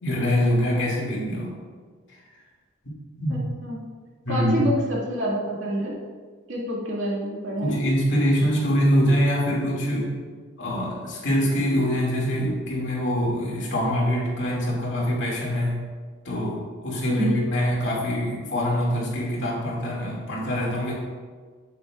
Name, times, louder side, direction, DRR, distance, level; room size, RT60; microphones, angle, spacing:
voice 1, 0.0-1.5 3.2-3.4 4.2-4.6 7.6-10.1 10.6-15.8 16.2-20.9, equal, 65° left, -4 dB, 2.2 m, -24 dB
voice 2, 3.3-3.8 4.3-6.0 6.5-7.8 17.1-17.4, equal, 75° right, -4 dB, 2.0 m, -27 dB
8.1 x 8.0 x 2.4 m, 1.5 s
head